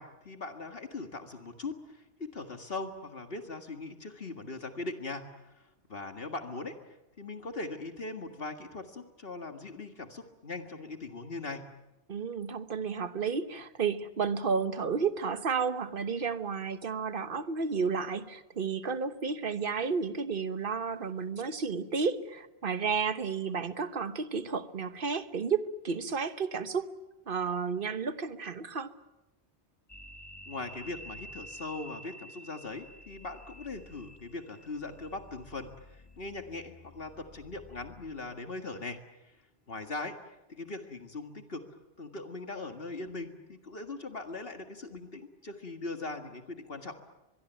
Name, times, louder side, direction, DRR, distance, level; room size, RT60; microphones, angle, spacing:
voice 1, 0.0-11.6 30.5-39.4 39.7-41.6 42.0-47.0, left 3 dB, 55° left, 7 dB, 2.1 m, -40 dB
voice 2, 12.1-26.9 27.3-28.9, right 5 dB, 55° right, 12 dB, 1.3 m, -32 dB
sound 1, 29.9-38.5, equal, 25° left, 1.1 m, -50 dB
24.0 x 22.5 x 9.2 m, 0.96 s
omnidirectional pair, 1.1 m